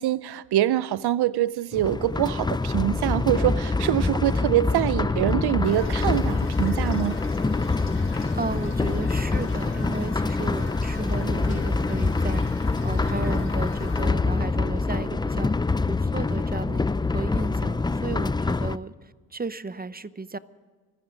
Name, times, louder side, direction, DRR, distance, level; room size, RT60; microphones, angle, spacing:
voice 1, 0.0-7.2, right 13 dB, 80° right, 18 dB, 0.5 m, -24 dB
sound 1, 1.7-18.8, left 3 dB, 10° left, 0.4 m, -25 dB
Toilet flush / Fill (with liquid), 5.6-14.1, left 2 dB, 35° left, 4.9 m, -43 dB
voice 2, 8.3-15.5 15.9-20.4, right 3 dB, 25° right, 15 dB, 0.7 m, -34 dB
26.0 x 9.8 x 5.1 m, 1.5 s
cardioid pair, 70°, 38 cm